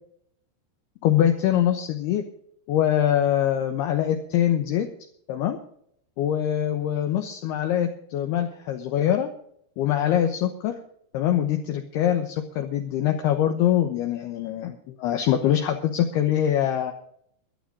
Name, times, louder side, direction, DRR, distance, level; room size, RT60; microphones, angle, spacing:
voice 1, 1.0-2.2 2.7-4.9 5.3-5.6 6.2-9.3 9.8-10.7 11.1-16.9, left 11 dB, 75° left, 5 dB, 2.8 m, -23 dB
23.0 x 7.9 x 5.3 m, 0.68 s
omnidirectional pair, 5.1 m